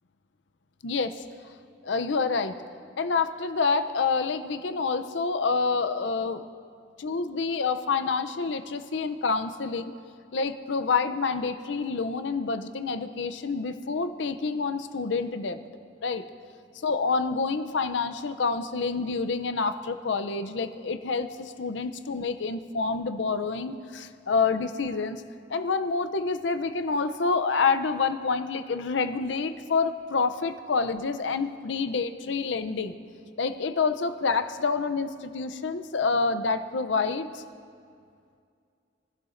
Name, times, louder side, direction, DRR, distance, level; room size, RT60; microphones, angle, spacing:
voice 1, 0.8-1.2 1.8-2.6 3.0-6.4 7.0-9.9 10.3-15.6 16.0-16.2 16.8-25.2 25.5-32.9 33.4-37.4, left 4 dB, 70° left, 10 dB, 0.6 m, -27 dB
22.5 x 11.0 x 2.6 m, 2.3 s
head